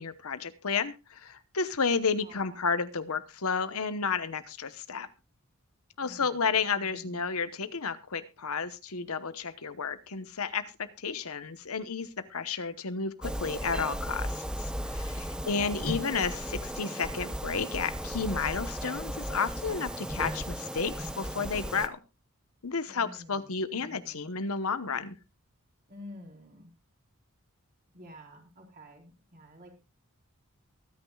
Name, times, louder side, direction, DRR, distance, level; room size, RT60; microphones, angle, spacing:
voice 1, 0.0-5.1 6.0-22.0 22.6-25.1, left 5 dB, 70° left, 12 dB, 1.0 m, -32 dB
voice 2, 2.2-2.6 6.0-7.2 15.2-16.2 22.8-24.3 25.9-26.7 27.9-29.8, left 1 dB, 45° right, 0 dB, 4.3 m, -51 dB
sound 1, 13.2-21.9, equal, 5° right, 0.7 m, -36 dB
24.0 x 9.6 x 2.3 m, 0.26 s
head